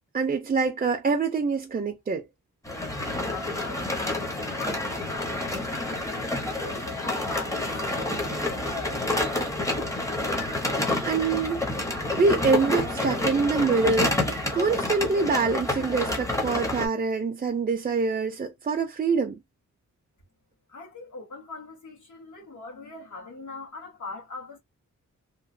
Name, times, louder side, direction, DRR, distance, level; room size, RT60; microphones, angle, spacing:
voice 1, 0.1-2.2 10.8-11.6 12.2-14.2 14.5-19.4, right 4 dB, 30° right, 0.4 m, -25 dB
sound 1, 2.6-16.9, left 2 dB, 10° left, 0.6 m, -29 dB
voice 2, 3.2-9.5 20.7-24.6, left 3 dB, 70° left, 1.5 m, -42 dB
2.9 x 2.1 x 2.5 m
wide cardioid pair, 165°, 31 cm